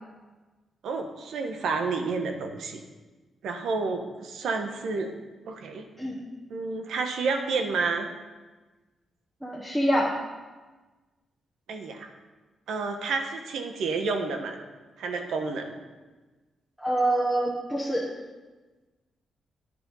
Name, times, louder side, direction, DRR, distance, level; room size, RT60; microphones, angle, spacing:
voice 1, 0.8-2.8 3.4-5.1 5.5-5.9 6.5-8.1 11.7-12.1 12.7-14.6 15.0-15.8, right 4 dB, 80° right, 5 dB, 1.2 m, -30 dB
voice 2, 9.4-10.1 16.8-18.0, right 1 dB, 5° right, -4 dB, 1.2 m, -25 dB
9.6 x 7.6 x 5.6 m, 1.3 s
cardioid pair, 140°, 0 cm